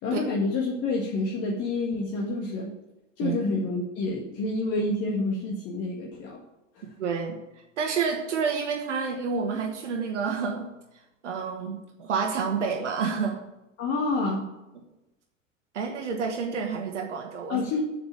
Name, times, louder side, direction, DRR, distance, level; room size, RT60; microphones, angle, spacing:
voice 1, 0.0-2.7 3.2-6.4 13.8-14.5 17.5-17.8, left 3 dB, 35° left, -1 dB, 1.8 m, -28 dB
voice 2, 6.8-7.4 7.8-10.7 11.2-13.4 15.7-17.6, right 5 dB, 65° right, 2 dB, 1.6 m, -29 dB
8.0 x 7.4 x 8.7 m, 0.97 s
figure-of-eight pair, 85°, 39 cm